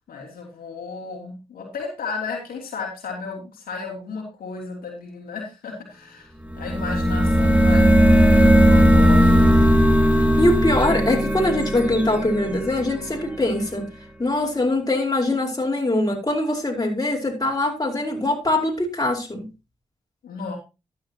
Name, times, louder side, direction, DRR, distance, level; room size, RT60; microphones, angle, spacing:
voice 1, 0.1-6.3 6.6-9.9 20.2-20.6, left 4 dB, 85° left, 0 dB, 3.2 m, -34 dB
sound 1, 6.5-13.2, equal, 10° right, 2.4 m, -17 dB
voice 2, 10.4-13.9 14.2-19.5, left 1 dB, 25° left, 0 dB, 4.8 m, -22 dB
12.5 x 9.9 x 3.0 m, 0.27 s
supercardioid pair, 40°, 15 cm